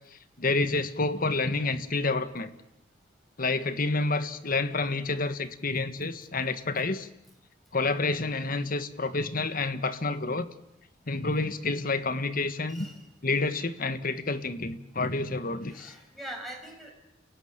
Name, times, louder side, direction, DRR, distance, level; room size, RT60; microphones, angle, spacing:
voice 1, 0.1-2.5 3.4-7.1 7.7-10.5 11.1-12.9 13.2-15.9, left 3 dB, 50° left, 11 dB, 1.6 m, -29 dB
voice 2, 12.7-13.0 15.7-16.9, right 1 dB, ahead, 2 dB, 6.8 m, -42 dB
29.5 x 18.0 x 9.0 m, 0.86 s
head